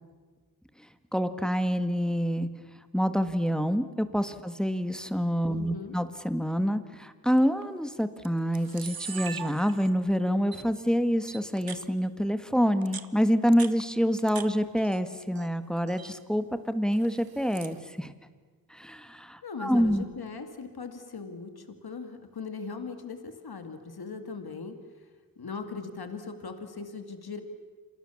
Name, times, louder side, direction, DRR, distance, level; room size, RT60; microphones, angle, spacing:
voice 1, 1.1-2.5 2.9-18.1 18.7-20.0, equal, ahead, 10 dB, 1.7 m, -27 dB
voice 2, 5.5-6.0 19.4-24.8 25.4-27.4, left 5 dB, 90° left, 7 dB, 2.4 m, -39 dB
Camera, 7.4-7.6 8.2-8.3 8.5-10.1 10.5-10.6 11.3-11.8 12.7-14.5 14.8-15.5 15.8-16.1 16.9-17.8, right 7 dB, 75° right, 1.3 m, -41 dB
29.0 x 27.5 x 7.2 m, 1.5 s
wide cardioid pair, 100°, 36 cm